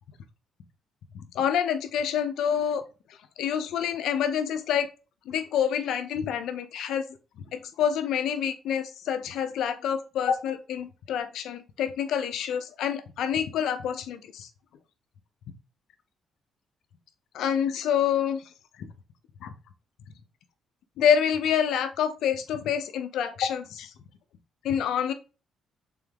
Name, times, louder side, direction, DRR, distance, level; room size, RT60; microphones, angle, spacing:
voice 1, 1.1-2.8 3.4-4.9 5.3-7.0 7.5-14.5 17.3-18.4 19.4-19.5 21.0-23.9 24.6-25.1, left 8 dB, 80° left, 10 dB, 0.5 m, -27 dB
3.7 x 3.5 x 3.4 m, 0.33 s
cardioid pair, 90°, 0 cm